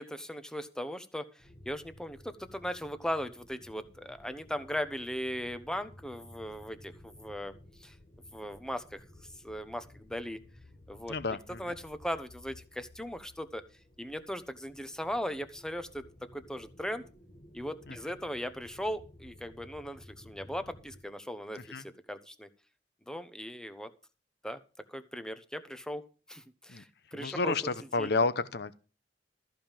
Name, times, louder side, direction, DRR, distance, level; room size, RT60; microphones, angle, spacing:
voice 1, 0.0-7.5 7.8-8.0 8.3-9.0 9.4-10.4 10.9-13.6 14.0-16.0 16.3-17.0 17.5-22.5 23.1-23.9 24.4-24.6 24.9-26.0 26.3-27.7 28.0-28.1, equal, 5° left, 1.0 m, -38 dB
sound 1, 1.4-21.0, left 1 dB, 40° left, 1.9 m, -55 dB
voice 2, 11.1-11.6 21.7-21.8 26.7-26.8 27.1-28.7, left 3 dB, 65° left, 0.9 m, -30 dB
14.0 x 5.3 x 7.5 m
head